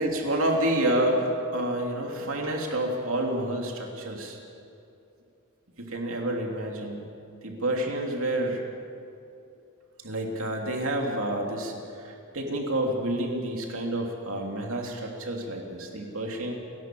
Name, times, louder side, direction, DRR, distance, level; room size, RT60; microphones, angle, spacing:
voice 1, 0.0-4.4 5.8-7.1 7.4-8.6 10.0-16.5, right 1 dB, 65° right, 1 dB, 3.0 m, -29 dB
29.5 x 12.0 x 7.7 m, 2.7 s
head